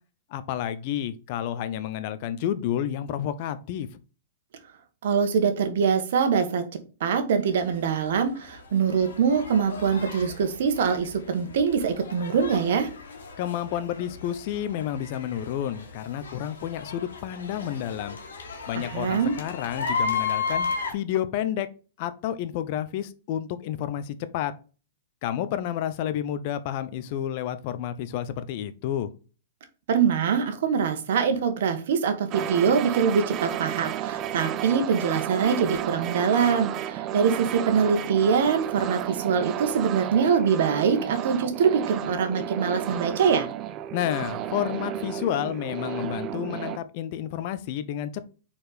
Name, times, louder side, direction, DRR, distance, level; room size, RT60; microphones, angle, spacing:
voice 1, 0.3-3.9 13.4-18.2 18.7-21.7 22.0-24.5 25.2-29.1 43.9-48.2, left 10 dB, 50° left, 12 dB, 0.7 m, -30 dB
voice 2, 5.0-6.6 7.0-12.9 18.7-19.4 29.9-43.5, right 6 dB, 65° right, 8 dB, 1.3 m, -24 dB
sound 1, 7.5-20.9, left 5 dB, 85° left, 1.7 m, -35 dB
sound 2, 32.3-46.8, right 11 dB, 35° right, 0.4 m, -32 dB
4.4 x 4.3 x 5.0 m, 0.35 s
hypercardioid pair, 125°, 0 cm